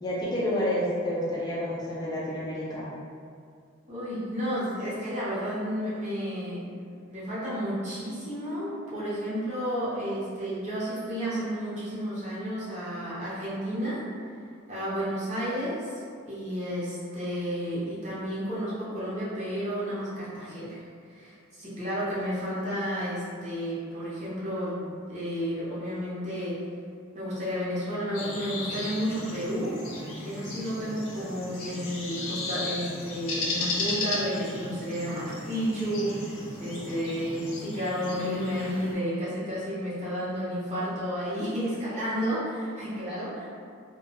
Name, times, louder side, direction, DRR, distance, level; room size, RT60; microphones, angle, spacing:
voice 1, 0.0-2.9 42.9-43.2, left 1 dB, 20° left, -8 dB, 0.4 m, -29 dB
voice 2, 3.9-6.7 7.1-14.0 14.7-15.9 16.2-20.8 21.1-26.6 27.1-29.7 30.2-43.5, equal, 35° right, -10 dB, 0.8 m, -32 dB
sound 1, 28.1-38.9, left 2 dB, 80° left, 0.6 m, -35 dB
2.3 x 2.2 x 2.9 m, 2.2 s
head